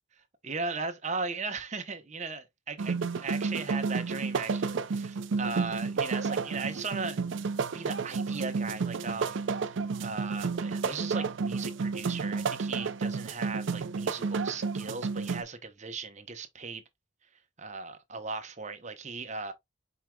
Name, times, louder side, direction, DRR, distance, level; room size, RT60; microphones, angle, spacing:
voice 1, 0.4-7.2 7.7-9.4 9.7-16.8 17.6-19.5, right 4 dB, 35° right, 0.8 m, -37 dB
sound 1, 2.8-15.4, right 4 dB, 60° right, 0.4 m, -31 dB
4.8 x 4.5 x 2.2 m
head